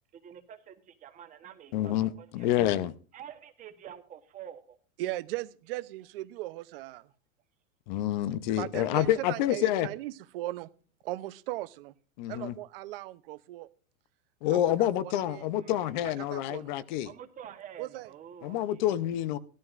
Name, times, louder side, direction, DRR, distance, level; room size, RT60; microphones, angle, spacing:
voice 1, 0.1-2.6 3.1-4.8 8.7-9.1 15.5-16.1 17.0-18.8, right 9 dB, 20° right, 1.1 m, -48 dB
voice 2, 1.7-2.9 7.9-9.9 12.2-12.6 14.4-17.1 18.4-19.4, left 12 dB, 35° left, 0.6 m, -28 dB
voice 3, 5.0-7.1 8.6-10.7 11.0-11.9 12.3-13.7 14.5-15.5 16.2-16.8 17.8-18.1, right 17 dB, 45° right, 0.7 m, -38 dB
17.0 x 13.0 x 2.5 m
supercardioid pair, 160°, 40 cm